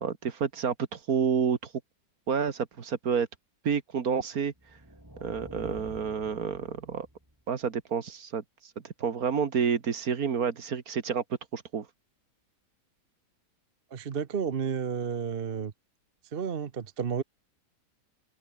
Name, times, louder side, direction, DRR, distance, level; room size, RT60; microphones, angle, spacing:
voice 1, 0.0-1.6 2.3-3.3 3.6-4.5 5.2-7.1 7.5-8.4 8.8-11.2 11.5-11.9, right 6 dB, 60° right, 2.0 m, -29 dB
sound 1, 4.6-7.5, right 1 dB, 10° right, 4.7 m, -48 dB
voice 2, 13.9-15.7 16.3-17.2, right 6 dB, 40° right, 1.0 m, -31 dB
open air
omnidirectional pair, 1.8 m